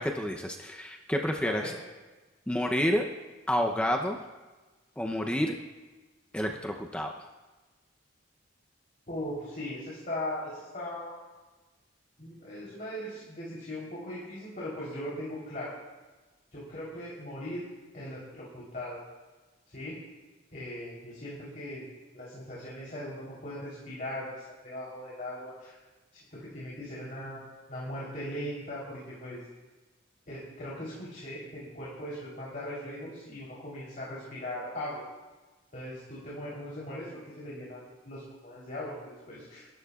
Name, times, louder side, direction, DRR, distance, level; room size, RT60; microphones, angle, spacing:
voice 1, 0.0-1.7 2.5-3.1 3.5-4.2 5.0-5.6 6.3-7.1, equal, 5° left, 2 dB, 0.7 m, -29 dB
voice 2, 9.1-11.1 12.2-15.8 16.5-17.7 17.9-19.0 19.7-20.0 20.5-21.9 22.1-25.8 26.3-27.4 27.7-29.4 30.3-35.0 35.7-39.7, left 1 dB, 40° left, -7 dB, 3.7 m, -39 dB
27.0 x 13.5 x 2.4 m, 1.2 s
head